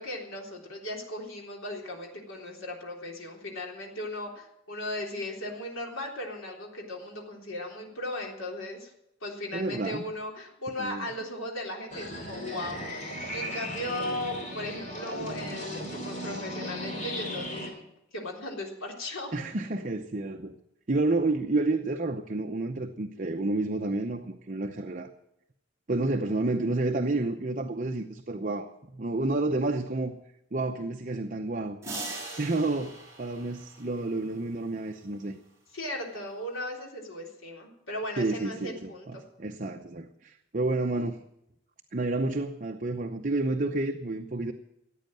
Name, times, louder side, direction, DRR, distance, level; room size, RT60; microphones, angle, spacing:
voice 1, 0.0-8.9 9.2-12.9 13.3-17.8 18.1-19.4 35.7-39.2, left 1 dB, 90° left, 0 dB, 3.6 m, -37 dB
voice 2, 9.5-10.1 10.8-11.1 19.3-20.5 20.9-25.1 25.9-30.1 30.5-31.8 32.4-35.4 38.2-41.2 41.9-44.5, right 2 dB, 40° right, 4 dB, 0.8 m, -30 dB
sound 1, 11.9-17.7, equal, 40° left, 3.4 m, -37 dB
sound 2, 31.8-34.3, right 2 dB, 15° right, 4.4 m, -40 dB
15.0 x 9.3 x 9.0 m, 0.79 s
head